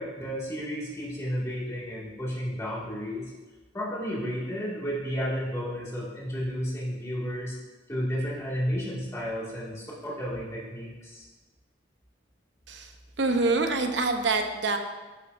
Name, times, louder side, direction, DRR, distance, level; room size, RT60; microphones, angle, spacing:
voice 1, 0.0-3.3 3.7-7.6 7.9-11.3, equal, 15° left, -7 dB, 2.2 m, -32 dB
voice 2, 12.7-14.8, right 3 dB, 70° right, 5 dB, 0.8 m, -26 dB
12.5 x 6.8 x 2.7 m, 1.2 s
head